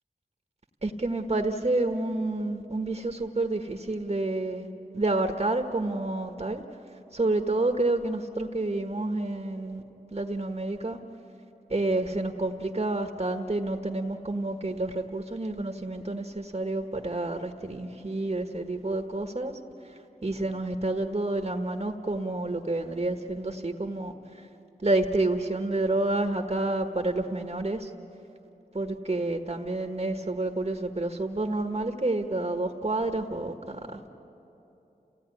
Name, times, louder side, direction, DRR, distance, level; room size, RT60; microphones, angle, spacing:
voice 1, 0.8-4.7 4.9-6.6 7.1-9.8 10.1-11.0 11.7-19.5 19.8-24.4 24.8-27.9 28.7-34.0, right 2 dB, 40° right, 4 dB, 1.4 m, -29 dB
29.0 x 17.0 x 9.9 m, 3.0 s
wide cardioid pair, 50°, 16 cm